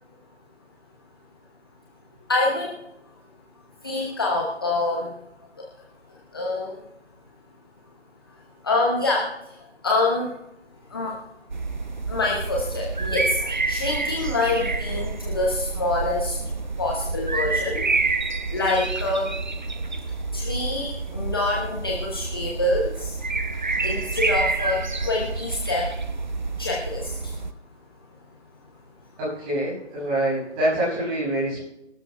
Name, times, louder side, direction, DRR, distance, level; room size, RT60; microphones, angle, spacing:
voice 1, 2.3-2.8 3.8-5.1 5.6-5.7 6.3-6.8 8.6-9.6 9.8-10.3 10.9-11.2 12.1-16.4 16.8-17.9 18.5-19.4 20.3-23.2 23.8-25.9 26.6-27.3, left 2 dB, 20° left, -2 dB, 1.0 m, -26 dB
sound 1, 11.5-27.5, right 3 dB, 40° right, 0.6 m, -28 dB
voice 2, 29.2-31.6, right 1 dB, 10° right, -7 dB, 6.1 m, -25 dB
24.5 x 13.0 x 2.2 m, 0.92 s
figure-of-eight pair, 155°, 36 cm